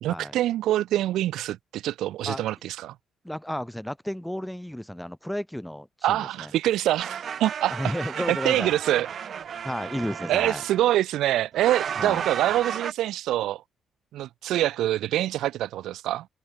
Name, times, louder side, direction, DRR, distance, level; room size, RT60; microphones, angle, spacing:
voice 1, 0.0-2.9 6.0-7.9 8.3-9.1 10.3-13.6 14.1-16.3, right 13 dB, 85° right, 0.5 m, -25 dB
voice 2, 3.2-6.5 7.7-8.7 9.6-10.6 12.0-12.2, equal, 5° left, 0.6 m, -32 dB
sound 1, 7.0-10.9 11.5-12.9, right 8 dB, 55° right, 1.1 m, -34 dB
cardioid pair, 90°, 0 cm